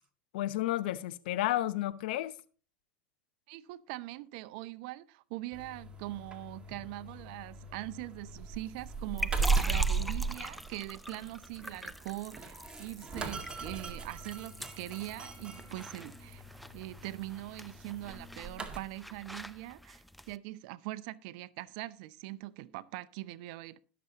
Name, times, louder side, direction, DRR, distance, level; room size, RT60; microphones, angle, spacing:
voice 1, 0.3-2.3, left 14 dB, 70° left, 0.7 m, -31 dB
voice 2, 3.5-16.4 16.7-23.8, right 17 dB, 65° right, 0.6 m, -42 dB
sound 1, 5.5-18.8, right 4 dB, 20° right, 2.0 m, -37 dB
sound 2, 8.8-20.4, equal, ahead, 0.5 m, -44 dB
20.0 x 6.9 x 2.9 m
hypercardioid pair, 95°, 5 cm